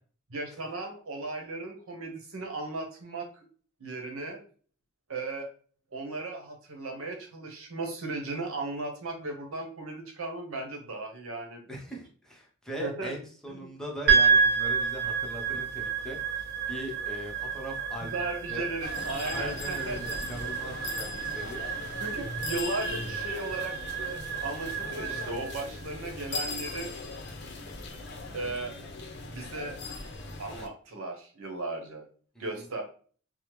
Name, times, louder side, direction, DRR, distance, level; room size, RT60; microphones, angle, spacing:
voice 1, 0.3-3.2 3.8-4.4 5.1-5.5 5.9-11.6 12.8-13.1 13.5-13.7 18.1-20.2 22.0-26.9 28.3-28.8 29.3-29.8 30.4-32.0 32.4-32.8, right 2 dB, 80° right, 2 dB, 0.9 m, -36 dB
voice 2, 11.7-18.7 19.2-22.0 32.3-32.6, equal, 5° left, -1 dB, 0.7 m, -40 dB
sound 1, 14.1-28.4, right 6 dB, 50° right, 1.2 m, -30 dB
sound 2, 18.8-30.7, left 3 dB, 55° left, 0.6 m, -39 dB
3.4 x 2.0 x 3.0 m, 0.43 s
head